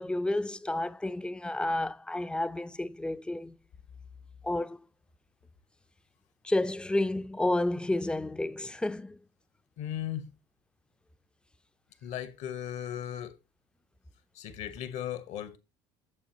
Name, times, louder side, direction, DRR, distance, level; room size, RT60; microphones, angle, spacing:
voice 1, 0.0-3.6 4.4-4.9 6.4-9.2, left 1 dB, 5° left, 0.5 m, -31 dB
voice 2, 9.8-10.3 12.0-13.4 14.3-15.6, left 11 dB, 60° left, 1.2 m, -37 dB
8.4 x 7.3 x 3.0 m
hypercardioid pair, 65°, 14 cm